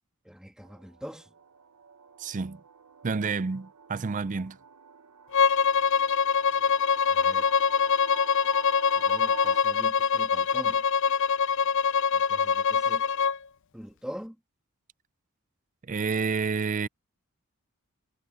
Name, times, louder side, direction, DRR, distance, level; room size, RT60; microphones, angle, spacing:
voice 1, 0.2-1.3 6.6-6.8 7.1-7.5 8.9-10.9 12.1-13.1 13.7-14.4, equal, 5° right, 2.0 m, -43 dB
sound 1, 0.6-9.6, right 7 dB, 90° right, 0.9 m, -47 dB
voice 2, 2.2-2.6 3.0-4.6 15.9-16.9, right 5 dB, 35° right, 0.4 m, -29 dB
Bowed string instrument, 5.3-13.4, left 6 dB, 55° left, 0.5 m, -24 dB
head